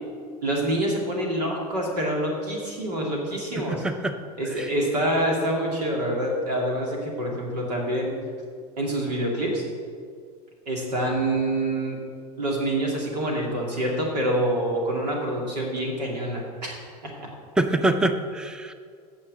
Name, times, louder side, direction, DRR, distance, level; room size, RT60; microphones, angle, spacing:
voice 1, 0.4-3.8 4.4-8.1 8.8-9.6 10.7-12.0 12.4-17.3, right 1 dB, 90° right, -1 dB, 2.6 m, -26 dB
voice 2, 3.6-4.1 17.6-18.7, right 2 dB, 5° right, 8 dB, 0.6 m, -24 dB
9.0 x 6.4 x 7.4 m, 2.1 s
hypercardioid pair, 90°, 20 cm